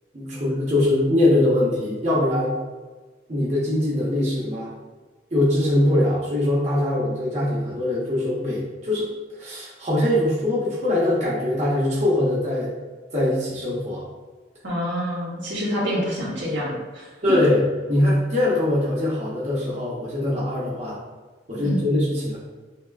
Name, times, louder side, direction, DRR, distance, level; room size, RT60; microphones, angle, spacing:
voice 1, 0.1-2.6 3.3-4.7 5.3-9.1 9.3-12.7 13.1-14.1 17.2-21.0 21.5-22.4, left 1 dB, 40° right, -7 dB, 0.8 m, -22 dB
voice 2, 14.6-17.1 21.6-21.8, equal, 85° right, -7 dB, 1.4 m, -27 dB
5.3 x 2.1 x 2.3 m, 1.3 s
head